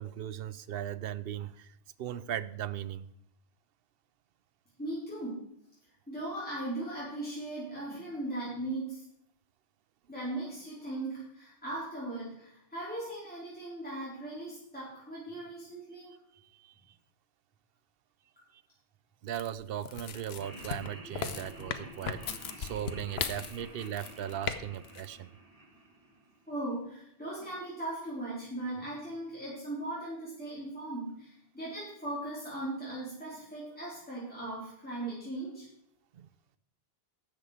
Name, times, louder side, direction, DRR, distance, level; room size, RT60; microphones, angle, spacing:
voice 1, 0.0-3.1 16.5-16.7 18.5-18.6 19.2-25.3 36.1-36.3, right 10 dB, 70° right, 16 dB, 0.8 m, -38 dB
voice 2, 4.8-5.5 6.1-9.0 10.1-16.2 26.5-35.7, right 1 dB, 10° left, -8 dB, 3.8 m, -38 dB
sound 1, 19.3-24.6 24.8-25.1, left 7 dB, 80° left, 1.1 m, -37 dB
Laughter, 20.4-26.6, right 1 dB, 35° right, 1.7 m, -50 dB
12.5 x 8.1 x 4.9 m, 0.74 s
omnidirectional pair, 1.0 m